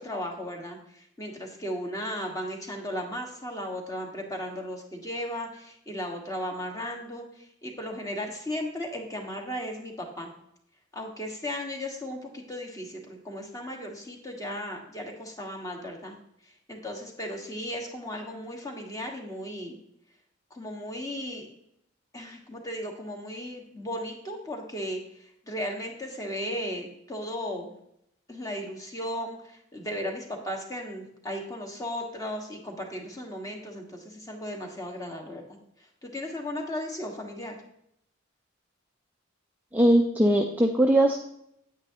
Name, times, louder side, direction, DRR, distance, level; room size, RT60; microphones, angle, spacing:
voice 1, 0.0-10.3 10.9-16.2 16.7-19.8 20.5-21.5 22.1-27.7 28.3-35.4 36.0-37.5, equal, 15° left, 2 dB, 1.5 m, -36 dB
voice 2, 39.7-41.2, right 1 dB, 10° right, 1 dB, 0.5 m, -20 dB
9.3 x 9.0 x 2.9 m, 0.76 s
head